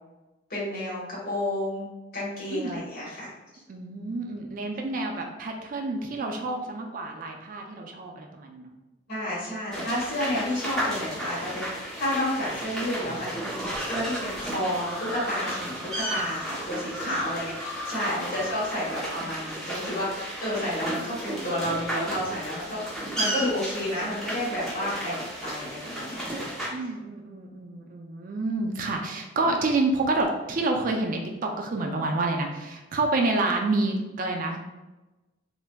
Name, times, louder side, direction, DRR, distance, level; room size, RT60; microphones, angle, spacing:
voice 1, 0.5-3.3 9.1-26.9 29.0-29.1, left 1 dB, 55° left, -6 dB, 1.2 m, -31 dB
voice 2, 3.7-8.7 17.0-17.5 18.2-18.4 26.7-34.6, right 2 dB, 45° right, 2 dB, 0.3 m, -28 dB
sound 1, 9.7-26.7, right 1 dB, ahead, 0.8 m, -33 dB
3.3 x 2.5 x 2.2 m, 1.1 s
head